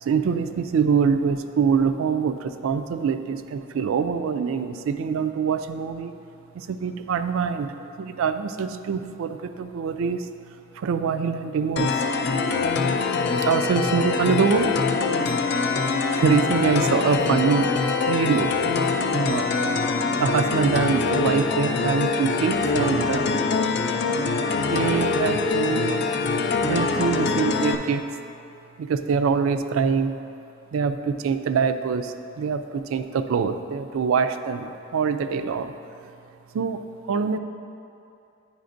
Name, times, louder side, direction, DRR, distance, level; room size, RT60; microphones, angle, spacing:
voice 1, 0.0-6.1 6.5-10.3 10.7-12.0 13.4-14.7 16.2-18.7 19.1-19.5 20.1-23.3 24.5-26.1 26.6-28.0 28.8-30.1 30.7-35.7 36.5-36.8 37.1-37.4, right 6 dB, 75° right, 10 dB, 0.3 m, -24 dB
sound 1, 11.8-27.8, left 4 dB, 50° left, 0.3 m, -24 dB
9.4 x 5.0 x 2.6 m, 2.6 s
head